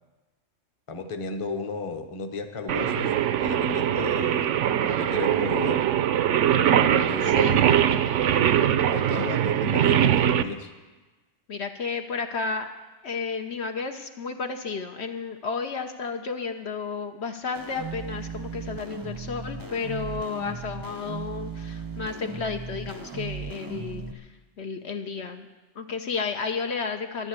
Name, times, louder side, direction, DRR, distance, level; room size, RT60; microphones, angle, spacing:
voice 1, 0.9-4.4 4.8-5.8 7.1-7.6 8.9-10.7, left 4 dB, 30° left, 6 dB, 0.9 m, -34 dB
Singing, 2.7-10.4, right 10 dB, 75° right, 0.9 m, -22 dB
voice 2, 11.5-12.7 13.0-24.3 24.6-25.4 25.8-27.3, left 5 dB, 60° left, 5 dB, 1.1 m, -32 dB
sound 1, 17.5-24.1, right 4 dB, 20° right, 0.6 m, -36 dB
11.5 x 11.0 x 8.2 m, 1.2 s
omnidirectional pair, 1.3 m